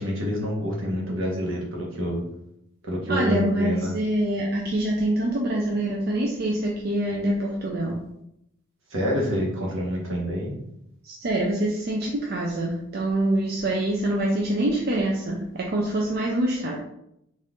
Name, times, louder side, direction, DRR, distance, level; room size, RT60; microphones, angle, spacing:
voice 1, 0.0-2.3 2.8-4.0 8.9-10.6, equal, 70° right, -3 dB, 1.2 m, -27 dB
voice 2, 3.1-8.0 11.0-16.8, right 1 dB, 50° right, -2 dB, 0.5 m, -25 dB
4.1 x 2.5 x 3.6 m, 0.80 s
head